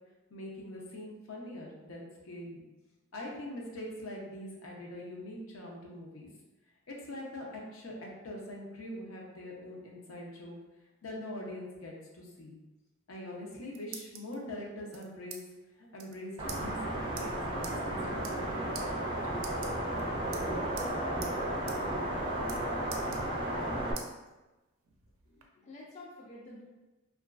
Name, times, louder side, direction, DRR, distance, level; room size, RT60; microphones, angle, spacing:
voice 1, 0.3-2.6 3.1-6.3 6.9-10.6 11.0-12.6 13.1-15.4 15.8-19.1, left 1 dB, 75° left, -1 dB, 0.6 m, -43 dB
sound 1, 13.3-14.4 14.9-15.4 15.7-15.8 16.0-16.2 16.5-16.6 17.2-17.3 17.6-17.8 18.1-18.5 18.7-18.9 19.4-20.0 20.3-20.9 21.2-21.3 21.7-21.8 22.1-22.6 22.9-23.6 24.0-24.1 24.6-25.5, right 6 dB, 85° right, 0.4 m, -45 dB
sound 2, 16.4-23.9, right 1 dB, 25° right, 0.5 m, -33 dB
voice 2, 25.3-26.6, left 2 dB, 35° left, -3 dB, 0.4 m, -49 dB
3.0 x 2.4 x 2.4 m, 1.1 s
head